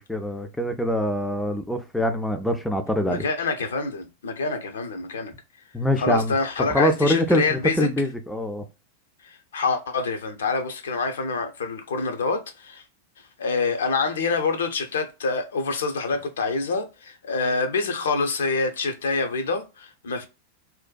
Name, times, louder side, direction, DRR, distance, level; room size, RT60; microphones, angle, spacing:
voice 1, 0.1-3.2 5.7-6.3 6.7-8.6, equal, 5° left, 0.3 m, -24 dB
voice 2, 3.1-5.3 6.0-7.9 9.3-12.8 13.4-20.3, left 4 dB, 65° left, 0.5 m, -26 dB
2.5 x 2.1 x 2.2 m
figure-of-eight pair, 90°, 0 cm